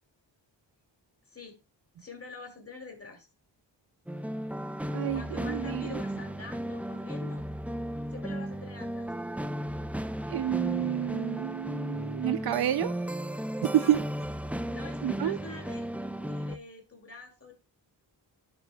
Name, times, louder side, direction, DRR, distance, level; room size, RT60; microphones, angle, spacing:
voice 1, 1.3-1.6 2.0-3.3 5.1-7.4 8.1-9.1 13.7-14.0 14.6-17.5, left 3 dB, 30° left, 2.5 m, -46 dB
sound 1, 4.1-16.6, equal, 5° right, 0.5 m, -35 dB
voice 2, 4.9-6.0 10.3-12.9 13.7-14.0 15.0-15.4, right 11 dB, 60° right, 0.5 m, -29 dB
11.0 x 7.0 x 2.3 m
cardioid pair, 70°, 44 cm